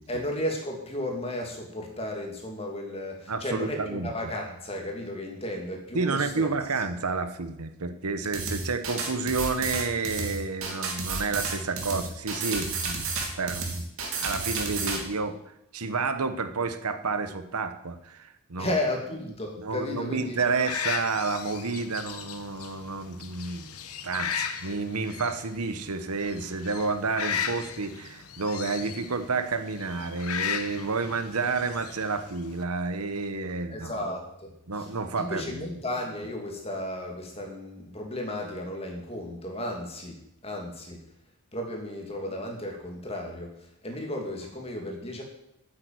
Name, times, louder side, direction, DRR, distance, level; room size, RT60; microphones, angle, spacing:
voice 1, 0.1-6.5 18.6-20.4 33.7-34.5 34.7-34.9 35.2-41.0 41.5-45.2, left 1 dB, 25° left, 1 dB, 2.7 m, -34 dB
voice 2, 3.3-4.1 5.9-13.1 13.4-13.8 14.1-15.4 15.7-18.7 19.6-23.7 24.0-33.9 34.7-35.7, right 4 dB, 90° right, 10 dB, 1.1 m, -30 dB
sound 1, 8.3-15.0, right 4 dB, 70° right, 2.8 m, -31 dB
sound 2, 20.4-32.6, left 7 dB, 80° left, 1.1 m, -36 dB
9.1 x 8.8 x 9.3 m, 0.82 s
head